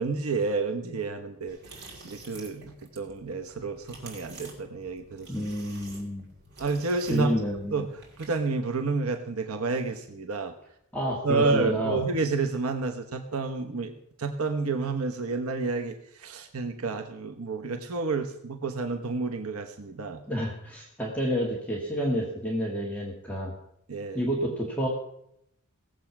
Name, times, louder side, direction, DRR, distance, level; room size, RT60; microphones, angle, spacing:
voice 1, 0.0-5.3 6.6-7.3 7.7-7.9 8.2-10.5 11.2-13.9 14.2-20.2 23.9-24.2, right 3 dB, 90° right, 5 dB, 1.0 m, -30 dB
sound 1, 1.5-8.5, right 3 dB, 55° right, 3.6 m, -49 dB
voice 2, 5.3-6.3 7.1-7.8 10.9-12.0 20.3-23.5 24.1-24.9, equal, 5° left, -2 dB, 1.8 m, -29 dB
17.5 x 7.7 x 5.9 m, 0.77 s
head